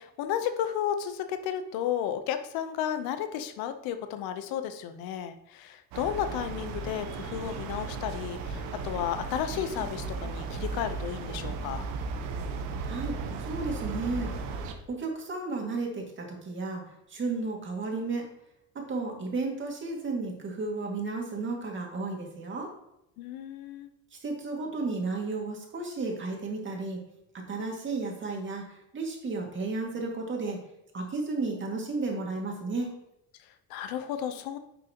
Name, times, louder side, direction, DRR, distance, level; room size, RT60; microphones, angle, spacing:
voice 1, 0.0-11.9 23.2-23.9 33.4-34.6, left 9 dB, 85° left, 9 dB, 0.9 m, -33 dB
sound 1, 5.9-14.7, right 4 dB, 85° right, 1.1 m, -35 dB
voice 2, 12.8-14.5 14.9-16.8 17.1-18.2 18.7-22.7 24.2-27.0 27.3-30.6 30.9-32.9, right 3 dB, 35° right, 0 dB, 2.3 m, -33 dB
10.0 x 6.2 x 3.0 m, 0.85 s
cardioid pair, 130°, 35 cm